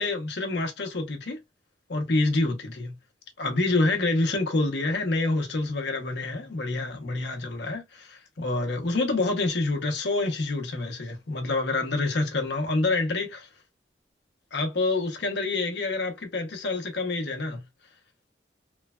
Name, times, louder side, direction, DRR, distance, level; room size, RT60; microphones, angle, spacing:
voice 1, 0.0-1.4 1.9-2.9 3.4-13.5 14.5-17.6, left 2 dB, 70° left, 0.8 m, -27 dB
3.1 x 2.2 x 2.3 m
head